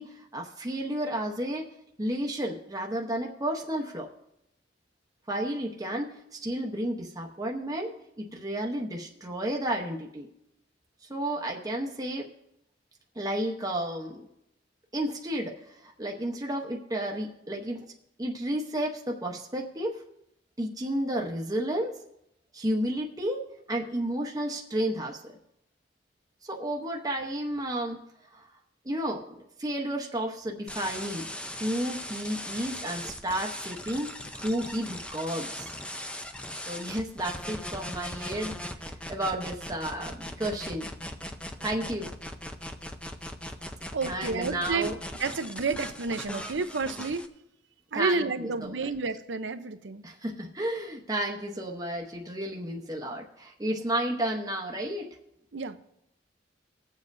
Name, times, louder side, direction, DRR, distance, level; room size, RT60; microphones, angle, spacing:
voice 1, 0.0-1.7 2.0-4.1 5.3-10.3 11.1-12.3 13.1-14.3 14.9-17.8 18.2-20.0 20.6-22.0 22.5-25.4 26.4-28.0 28.3-28.5 28.8-35.7 36.7-40.9 41.6-42.1 44.1-45.0 47.9-48.8 50.0-55.2, right 1 dB, 20° right, 0 dB, 0.9 m, -32 dB
sound 1, 30.7-47.3, left 1 dB, 5° left, 0.6 m, -39 dB
voice 2, 43.9-44.9 45.2-47.2 47.9-50.0 55.5-55.8, right 4 dB, 70° right, 10 dB, 0.7 m, -30 dB
21.0 x 7.4 x 2.6 m, 0.81 s
head